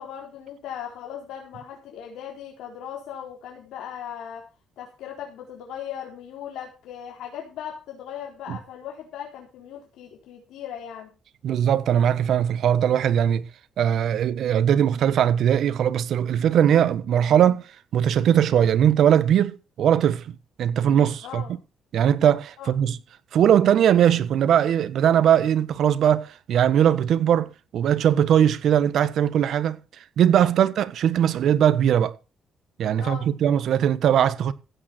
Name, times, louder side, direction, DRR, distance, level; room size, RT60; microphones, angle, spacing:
voice 1, 0.0-4.4 4.8-11.1 21.2-21.5 22.6-22.7 30.5-30.7 33.0-33.3, left 9 dB, 85° left, 4.0 m, -38 dB
voice 2, 11.4-13.5 13.8-17.6 17.9-21.4 21.9-23.0 23.3-29.8 30.2-32.1 32.8-34.5, right 9 dB, 70° right, 1.3 m, -20 dB
15.5 x 9.1 x 4.5 m
cardioid pair, 90°, 0 cm